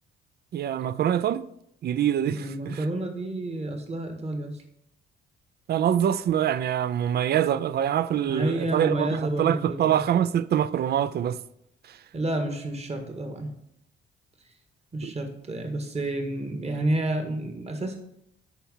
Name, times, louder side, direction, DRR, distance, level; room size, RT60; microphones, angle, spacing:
voice 1, 0.5-1.5 1.8-2.8 5.7-11.4 15.0-15.1, right 10 dB, 55° right, 0.5 m, -25 dB
voice 2, 2.3-4.6 8.2-10.0 12.1-13.5 14.9-18.0, right 1 dB, 30° right, 1.7 m, -30 dB
10.5 x 4.5 x 5.5 m
cardioid pair, 90°, 20 cm